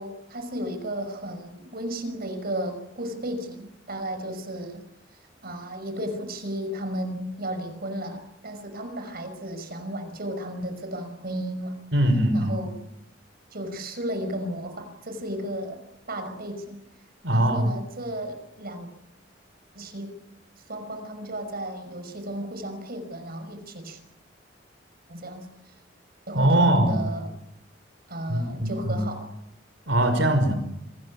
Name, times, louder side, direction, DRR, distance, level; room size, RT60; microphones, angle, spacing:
voice 1, 0.0-4.9 5.4-11.8 12.3-12.8 13.5-15.8 16.1-16.8 17.3-18.9 19.8-20.2 20.7-24.0 25.1-25.7 26.3-27.3 28.1-29.3, right 1 dB, 55° right, 8 dB, 5.7 m, -34 dB
voice 2, 11.9-12.6 17.2-17.7 26.3-27.1 28.3-29.1 29.9-30.5, right 1 dB, 75° right, 7 dB, 5.6 m, -21 dB
27.0 x 20.5 x 8.6 m, 0.84 s
head